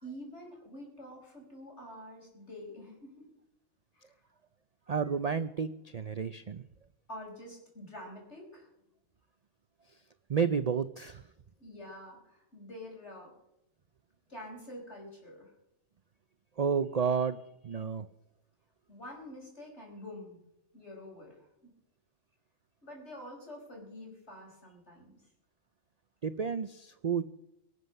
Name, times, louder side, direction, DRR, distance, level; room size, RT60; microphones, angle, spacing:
voice 1, 0.0-3.3 3.9-4.1 7.1-8.7 11.6-13.3 14.3-15.5 18.9-20.4 20.7-21.5 22.8-25.2, left 1 dB, 60° left, 0 dB, 5.4 m, -47 dB
voice 2, 4.9-6.6 10.3-11.3 16.6-18.1 26.2-27.2, right 6 dB, 50° right, 12 dB, 0.4 m, -31 dB
23.0 x 7.8 x 6.6 m, 0.85 s
omnidirectional pair, 1.4 m